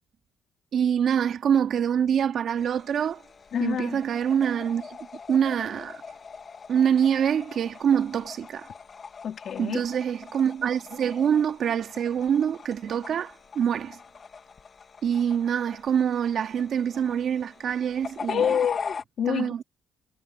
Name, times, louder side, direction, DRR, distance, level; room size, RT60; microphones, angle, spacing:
voice 1, 0.7-3.2 3.6-5.0 5.3-6.0 6.7-8.7 9.6-14.0 15.0-18.6 19.3-19.6, right 8 dB, 55° right, 2.4 m, -25 dB
sound 1, 2.6-19.0, left 5 dB, 35° left, 2.1 m, -42 dB
voice 2, 3.5-4.0 9.2-9.8 18.3-19.5, left 8 dB, 55° left, 2.7 m, -27 dB
cardioid pair, 105°, 0 cm